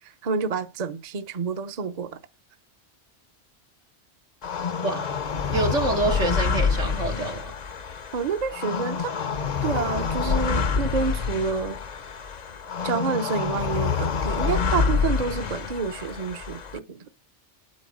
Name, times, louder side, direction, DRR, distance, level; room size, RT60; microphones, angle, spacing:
voice 1, 0.0-2.2 8.1-9.1 9.6-11.8 12.8-17.1, right 5 dB, 40° right, 0.8 m, -28 dB
sound 1, 4.4-16.8, left 6 dB, 45° left, 0.7 m, -27 dB
voice 2, 5.5-7.5, right 3 dB, 85° right, 2.2 m, -26 dB
8.5 x 8.4 x 6.3 m
omnidirectional pair, 1.2 m